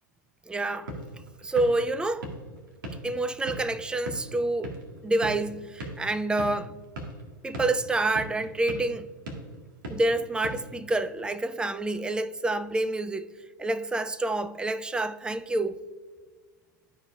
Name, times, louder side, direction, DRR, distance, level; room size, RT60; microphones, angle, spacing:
voice 1, 0.5-0.9 1.4-2.3 3.0-4.8 5.0-6.7 7.4-9.1 9.9-13.3 13.6-15.8, right 2 dB, 10° right, 0.4 m, -28 dB
sound 1, 0.6-11.3, right 1 dB, 75° right, 1.8 m, -41 dB
13.5 x 4.9 x 2.5 m
hypercardioid pair, 100°, 11 cm